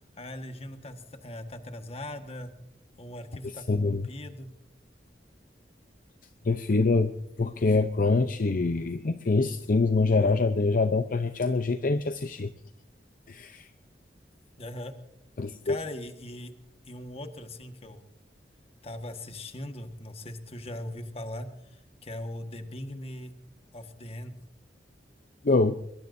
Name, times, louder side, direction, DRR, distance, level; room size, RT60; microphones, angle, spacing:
voice 1, 0.2-2.5 3.0-4.5 14.6-14.9 15.6-16.5 16.8-18.0 18.8-23.3 23.7-24.4, left 1 dB, 35° left, 7 dB, 1.5 m, -40 dB
voice 2, 3.7-4.1 6.4-7.1 7.4-12.5 13.3-13.7 15.4-15.8 25.4-25.8, left 3 dB, 50° left, 10 dB, 0.6 m, -25 dB
22.5 x 22.5 x 2.7 m, 0.77 s
head